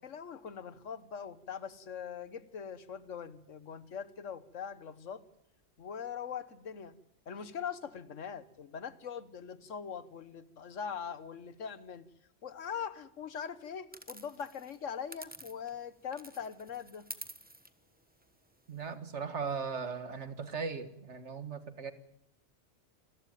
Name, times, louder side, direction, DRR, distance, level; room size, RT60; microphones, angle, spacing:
voice 1, 0.0-5.2 5.8-7.0 7.3-12.1 12.4-17.0, left 7 dB, 85° left, 14 dB, 1.5 m, -42 dB
sound 1, 13.9-15.8 16.1-18.9, right 1 dB, 10° right, 1.1 m, -49 dB
voice 2, 18.7-21.9, right 5 dB, 65° right, 10 dB, 1.9 m, -38 dB
28.0 x 15.0 x 9.2 m, 0.80 s
omnidirectional pair, 1.3 m